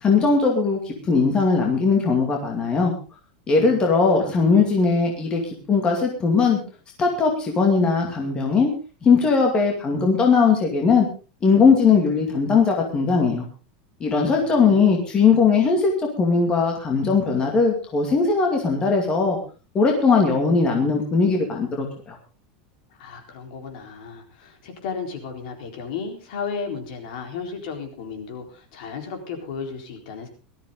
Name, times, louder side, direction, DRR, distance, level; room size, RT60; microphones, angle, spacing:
voice 1, 0.0-2.9 3.5-5.4 5.7-6.6 7.0-8.7 9.0-11.1 11.4-13.4 14.0-19.4 19.7-22.2, left 5 dB, 15° left, 1 dB, 2.4 m, -19 dB
voice 2, 3.6-4.7 14.4-15.0 23.0-30.3, left 5 dB, 55° left, 4 dB, 4.2 m, -34 dB
18.5 x 13.5 x 3.9 m, 0.34 s
supercardioid pair, 175°, 5 cm